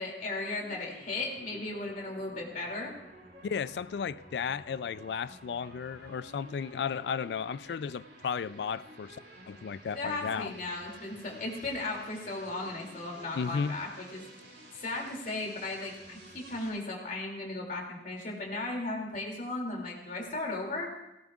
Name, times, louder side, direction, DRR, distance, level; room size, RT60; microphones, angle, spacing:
voice 1, 0.0-2.9 9.9-14.3 14.8-20.9, left 2 dB, 45° left, 2.7 m, -36 dB
sound 1, 0.6-16.7, right 1 dB, 65° right, 6.1 m, -52 dB
voice 2, 3.4-9.2 9.5-10.5 13.3-13.8, left 6 dB, 65° left, 0.3 m, -34 dB
17.0 x 17.0 x 2.4 m
head